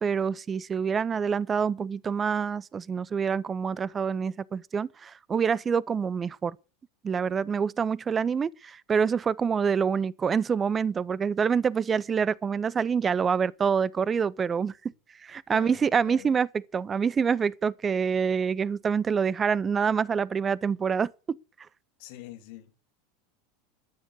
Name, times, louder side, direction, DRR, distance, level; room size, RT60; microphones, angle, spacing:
voice 1, 0.0-6.6 7.0-14.9 15.2-16.5 16.7-21.4, right 6 dB, 25° right, 0.6 m, -26 dB
voice 2, 15.5-16.4 22.0-22.8, left 14 dB, 60° left, 2.9 m, -45 dB
13.0 x 7.2 x 7.8 m
hypercardioid pair, 85°, 0 cm